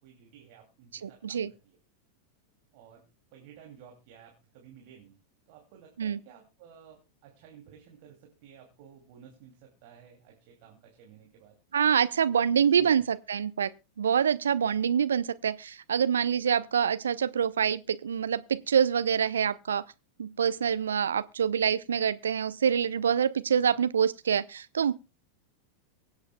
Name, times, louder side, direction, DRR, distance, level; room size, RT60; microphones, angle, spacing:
voice 1, 0.0-1.8 2.7-5.2 5.5-11.6 12.6-13.1 23.6-23.8, right 8 dB, 45° right, 2.7 m, -54 dB
voice 2, 1.0-1.5 6.0-6.2 11.7-13.7 14.0-19.8 20.2-24.9, right 7 dB, 70° right, 0.6 m, -26 dB
23.5 x 8.2 x 2.3 m
figure-of-eight pair, 90°, 0 cm